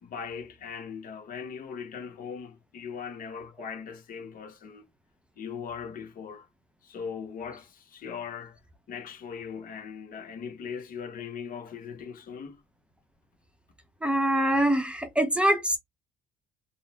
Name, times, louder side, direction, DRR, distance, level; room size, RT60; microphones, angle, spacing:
voice 1, 0.0-4.8 5.4-6.5 6.8-8.6 8.9-12.6, left 6 dB, 55° left, 1.0 m, -39 dB
voice 2, 14.0-15.8, right 1 dB, 5° right, 0.8 m, -24 dB
3.9 x 2.1 x 4.1 m
cardioid pair, 110°, 17 cm